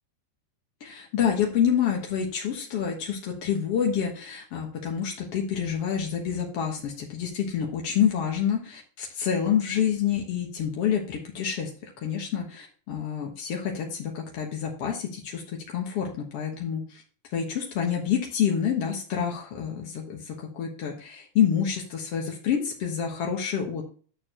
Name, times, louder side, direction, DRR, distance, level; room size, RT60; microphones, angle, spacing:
voice 1, 0.8-17.0 17.3-23.9, left 8 dB, 75° left, 0 dB, 1.4 m, -28 dB
11.0 x 6.8 x 3.0 m, 0.42 s
omnidirectional pair, 4.9 m